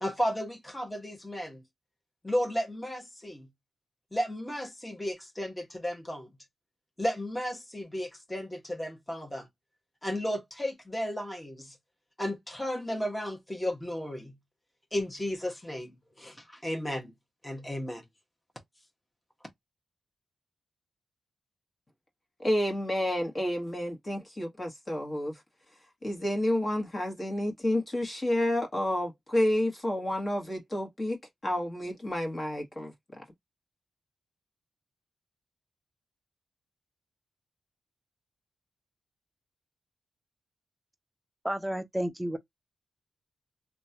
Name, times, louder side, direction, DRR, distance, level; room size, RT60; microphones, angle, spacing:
voice 1, 0.0-1.6 2.2-3.5 4.1-6.3 7.0-9.5 10.0-11.8 12.2-14.4 14.9-17.1 17.4-18.0, equal, 10° left, 1.2 m, -34 dB
voice 2, 22.4-25.4 26.0-33.2, left 1 dB, 30° left, 1.5 m, -30 dB
voice 3, 41.4-42.4, right 1 dB, 5° right, 0.8 m, -31 dB
2.9 x 2.3 x 2.8 m
cardioid pair, 80°, 0 cm